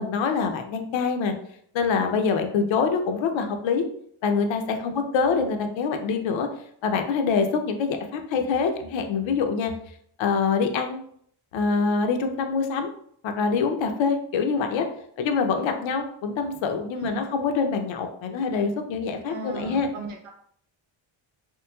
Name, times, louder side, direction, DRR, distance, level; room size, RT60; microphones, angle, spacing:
voice 1, 0.0-1.3 1.7-3.8 4.2-6.5 6.8-9.7 10.2-11.0 11.5-12.9 13.2-14.9 15.2-19.9, left 5 dB, 65° left, 6 dB, 0.6 m, -25 dB
voice 2, 19.3-20.3, right 3 dB, 80° right, 3 dB, 0.8 m, -37 dB
3.1 x 3.0 x 2.2 m, 0.65 s
cardioid pair, 110°, 50 cm